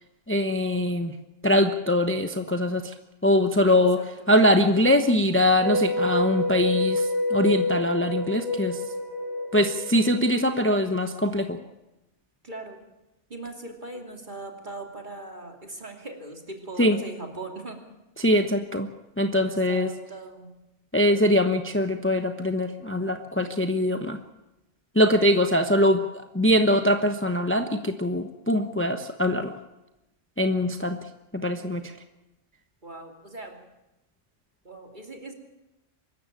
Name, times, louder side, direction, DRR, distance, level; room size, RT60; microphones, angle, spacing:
voice 1, 0.3-1.1 1.4-2.9 3.2-4.0 4.3-8.8 9.5-11.6 16.8-17.0 18.2-18.9 19.2-19.9 20.9-24.2 24.9-26.0 26.3-29.5 30.4-31.0 31.3-31.8, left 1 dB, 10° left, 7 dB, 1.0 m, -22 dB
voice 2, 3.7-4.3 12.4-12.8 13.3-17.8 19.4-20.5 32.8-33.6 34.6-35.3, right 2 dB, 40° right, 3 dB, 3.1 m, -40 dB
sound 1, 5.6-10.8, left 2 dB, 70° left, 4.5 m, -28 dB
24.5 x 14.0 x 9.1 m, 0.96 s
omnidirectional pair, 1.3 m